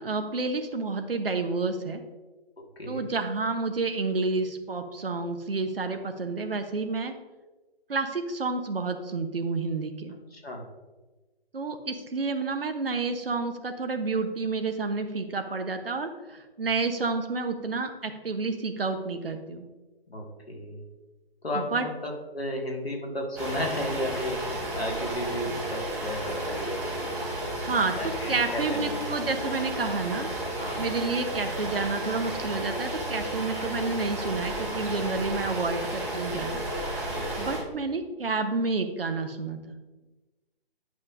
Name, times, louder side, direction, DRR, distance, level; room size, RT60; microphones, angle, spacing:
voice 1, 0.0-2.0 2.9-7.1 7.9-10.1 11.5-19.6 21.5-21.9 27.6-27.9 28.3-30.3 30.8-36.6 37.4-39.7, right 3 dB, 65° right, 7 dB, 0.9 m, -30 dB
voice 2, 2.6-3.0 10.3-10.6 20.1-20.8 21.4-27.0 28.0-29.2 30.6-30.8 37.1-37.3, left 1 dB, 70° left, 0 dB, 1.8 m, -34 dB
sound 1, 23.4-37.6, right 1 dB, 5° right, 1.9 m, -32 dB
10.5 x 5.3 x 2.6 m, 1.2 s
figure-of-eight pair, 140°, 31 cm